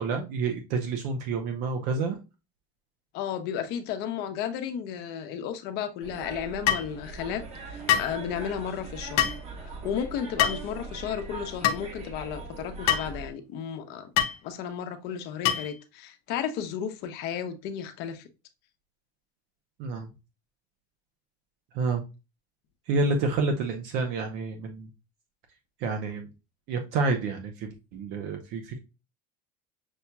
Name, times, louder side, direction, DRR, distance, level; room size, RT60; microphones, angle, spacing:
voice 1, 0.0-2.2 19.8-20.1 21.7-22.0 22.9-24.9 25.8-26.3 26.7-28.8, right 3 dB, 65° right, 5 dB, 0.8 m, -29 dB
voice 2, 3.1-7.4 7.7-9.2 9.6-14.1 14.4-18.3, left 8 dB, 60° left, 8 dB, 0.8 m, -33 dB
sound 1, 6.0-13.3, right 3 dB, 35° right, 1.2 m, -41 dB
sound 2, 6.7-6.9 7.9-8.1 9.2-9.4 10.4-10.7 11.6-11.8 12.9-13.1 14.2-14.4 15.4-15.8, left 10 dB, 90° left, 0.7 m, -24 dB
6.3 x 2.8 x 2.2 m, 0.28 s
cardioid pair, 145°, 19 cm